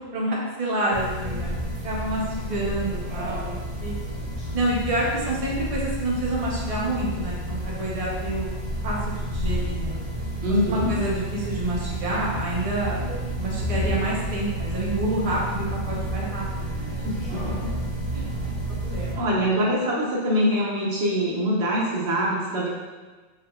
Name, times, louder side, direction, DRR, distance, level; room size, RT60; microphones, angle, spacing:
voice 1, 0.1-3.9 4.5-8.5 8.8-10.0 10.7-13.0 13.4-17.0 18.1-18.2 18.7-19.2, right 1 dB, 35° right, -5 dB, 0.8 m, -28 dB
sound 1, 0.9-19.1, right 1 dB, 10° right, 1.5 m, -30 dB
voice 2, 10.4-10.9 17.0-17.7 19.2-22.7, equal, 85° right, -4 dB, 1.1 m, -24 dB
4.1 x 3.6 x 2.3 m, 1.3 s
omnidirectional pair, 1.1 m